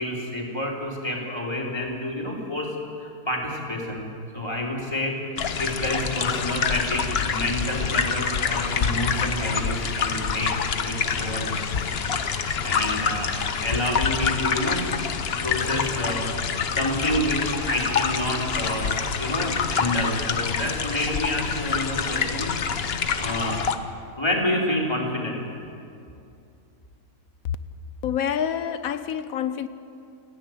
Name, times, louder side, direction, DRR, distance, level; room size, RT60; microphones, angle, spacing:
voice 1, 0.0-2.7 3.0-5.2 5.6-13.3 13.6-14.8 15.4-16.3 16.7-22.5 23.2-23.6 24.2-25.4, left 1 dB, 15° left, 3.4 m, -29 dB
sound 1, 5.4-23.8, left 6 dB, 45° left, 1.0 m, -26 dB
voice 2, 28.0-29.7, left 9 dB, 70° left, 1.2 m, -27 dB
29.0 x 10.0 x 9.1 m
omnidirectional pair, 1.6 m